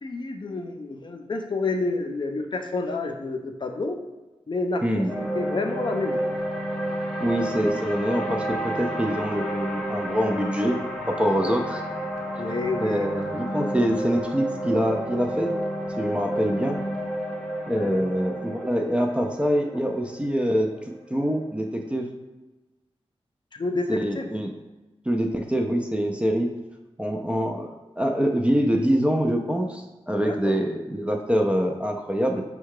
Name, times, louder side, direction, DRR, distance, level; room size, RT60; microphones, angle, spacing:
voice 1, 0.0-4.0 4.5-6.2 11.4-11.6 12.4-13.1 17.7-18.1 23.5-24.3 30.2-30.6, left 3 dB, 45° left, 4 dB, 0.5 m, -29 dB
C Minor Lush Pad, 5.1-21.3, right 1 dB, 5° left, 0.8 m, -31 dB
voice 2, 7.2-11.8 12.8-15.5 16.0-16.8 17.7-22.1 23.9-24.5 25.1-26.5 27.0-32.4, equal, 10° right, 2 dB, 0.4 m, -25 dB
4.6 x 2.2 x 4.7 m, 1.1 s
wide cardioid pair, 100°, 11 cm